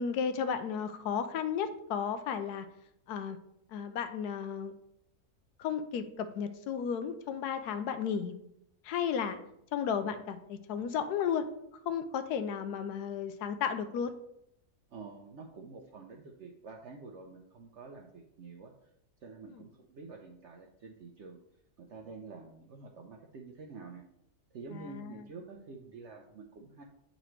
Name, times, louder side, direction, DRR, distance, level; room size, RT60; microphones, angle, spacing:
voice 1, 0.0-2.7 3.1-3.4 3.7-4.7 5.6-8.3 8.8-9.4 9.7-11.4 11.9-14.1 24.7-25.2, left 7 dB, 80° left, 9 dB, 1.1 m, -33 dB
voice 2, 14.9-18.7 19.2-21.4 21.8-24.0 24.5-26.8, right 4 dB, 60° right, 1 dB, 0.8 m, -48 dB
8.8 x 3.9 x 3.2 m, 0.78 s
omnidirectional pair, 1.7 m